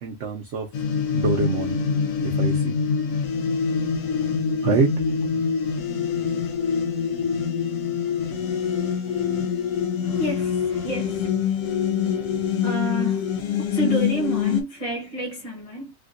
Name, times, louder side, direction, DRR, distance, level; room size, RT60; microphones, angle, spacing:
voice 1, 0.0-0.7 1.1-1.8 2.2-2.8 4.6-5.0, right 5 dB, 60° right, 1.0 m, -25 dB
sound 1, 0.7-14.6, left 6 dB, 70° left, 1.1 m, -25 dB
sound 2, 4.1-4.5 5.1-5.5 6.1-6.5 7.1-7.5 8.1-8.5 9.1-9.5 10.1-10.5 11.1-11.5 12.1-12.5, left 4 dB, 45° left, 1.1 m, -47 dB
voice 2, 10.0-11.8 12.6-13.3 13.7-15.9, right 1 dB, 25° left, 1.2 m, -30 dB
3.5 x 2.4 x 2.5 m
omnidirectional pair, 1.4 m